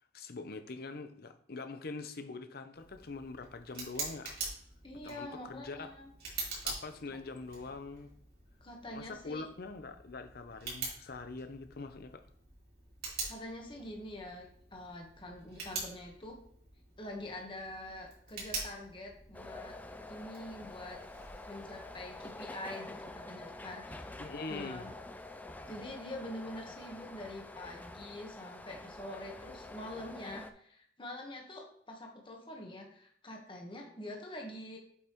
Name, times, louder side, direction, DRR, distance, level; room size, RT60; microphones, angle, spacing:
voice 1, 0.0-4.3 4.9-5.9 6.6-8.1 8.9-12.2 24.2-24.9, left 3 dB, 60° left, 8 dB, 0.7 m, -44 dB
Tick, 2.7-22.4, right 3 dB, 60° right, 3.2 m, -45 dB
voice 2, 4.8-6.1 8.6-9.5 13.2-16.4 17.0-19.7 20.1-21.0 21.4-24.0 24.5-24.9 25.7-34.8, left 1 dB, 30° left, 1 dB, 1.2 m, -45 dB
sound 1, 19.3-30.5, left 2 dB, 10° left, 0.4 m, -47 dB
8.1 x 5.4 x 3.0 m, 0.65 s
head